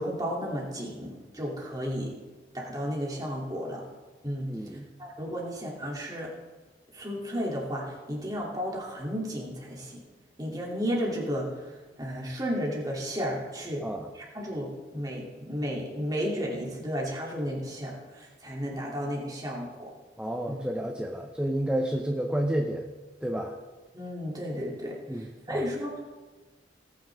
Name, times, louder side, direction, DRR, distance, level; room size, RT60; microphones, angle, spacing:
voice 1, 0.0-2.2 2.5-3.8 4.2-4.5 5.0-6.3 6.9-10.0 10.4-13.8 14.1-19.9 20.5-20.6 23.9-26.0, equal, 20° right, -3 dB, 2.7 m, -33 dB
voice 2, 4.5-4.9 13.8-14.1 20.2-22.8 23.2-23.6 25.1-25.6, right 1 dB, 5° right, 2 dB, 0.7 m, -30 dB
19.0 x 9.3 x 3.5 m, 1.3 s
head